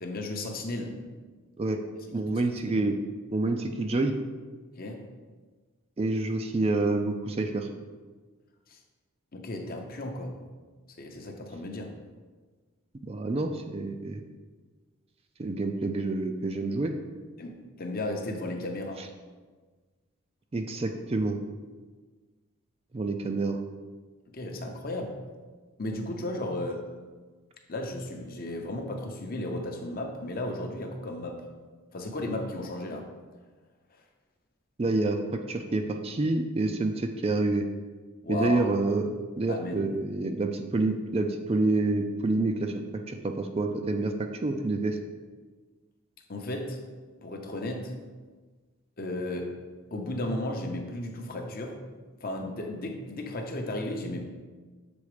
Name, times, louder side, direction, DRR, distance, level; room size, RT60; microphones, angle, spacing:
voice 1, 0.0-1.0 2.1-2.2 2.6-2.7 4.8-5.1 8.7-8.8 9.3-10.4 11.0-11.9 17.4-19.1 24.3-25.2 25.8-26.9 27.7-31.5 31.9-33.1 38.2-38.8 39.5-39.9 46.3-46.8 47.2-47.9 49.0-49.6 49.9-51.8 52.2-54.2, left 1 dB, 40° left, 3 dB, 0.7 m, -34 dB
voice 2, 2.1-2.9 3.3-4.1 6.0-7.7 13.0-14.2 15.4-16.9 19.0-19.1 20.5-21.4 22.9-23.6 34.8-37.7 38.3-39.1 39.4-45.0, right 2 dB, 25° right, 5 dB, 0.4 m, -28 dB
7.0 x 4.0 x 4.9 m, 1.4 s
head